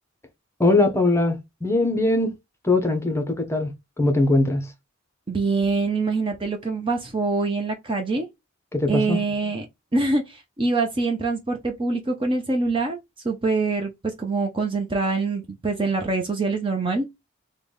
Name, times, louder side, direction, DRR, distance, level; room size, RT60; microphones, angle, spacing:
voice 1, 0.6-2.3 2.6-4.7 8.7-9.2, left 2 dB, 10° left, 0.7 m, -21 dB
voice 2, 5.3-8.3 8.9-9.7 9.9-13.0 13.2-17.1, right 3 dB, 25° right, 0.5 m, -24 dB
3.9 x 2.2 x 3.3 m
head